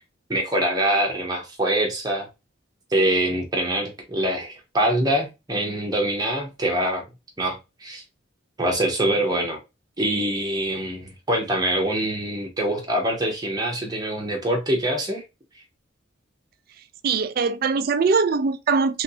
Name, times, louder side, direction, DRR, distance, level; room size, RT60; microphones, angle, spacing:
voice 1, 0.3-2.3 2.9-7.0 7.4-8.0 8.6-9.6 10.0-15.2, right 1 dB, 20° right, 0.8 m, -24 dB
voice 2, 17.0-19.0, right 4 dB, 50° right, 0.3 m, -22 dB
3.1 x 2.6 x 2.7 m
head